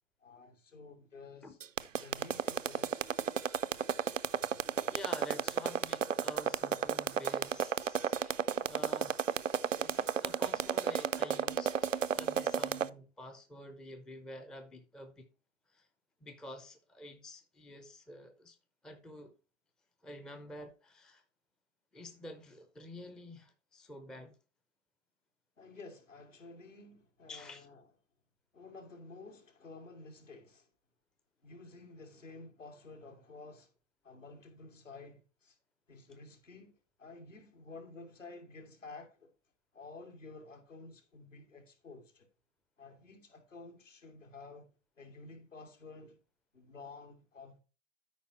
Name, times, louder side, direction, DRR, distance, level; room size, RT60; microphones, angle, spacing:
voice 1, 0.2-1.6 2.0-3.2 25.6-27.8 28.5-30.7 31.4-33.7 34.0-35.6 35.9-39.3 39.7-42.3 42.8-46.2 46.5-47.6, left 3 dB, 80° left, 2.5 m, -52 dB
sound 1, 1.6-12.9, right 8 dB, 80° right, 0.6 m, -32 dB
voice 2, 4.9-8.4 8.7-9.2 9.8-15.3 15.7-15.9 16.2-18.6 18.8-19.3 20.0-21.2 21.9-24.3 27.3-27.7, left 1 dB, ahead, 0.4 m, -49 dB
13.0 x 5.2 x 2.9 m
figure-of-eight pair, 100°, 37 cm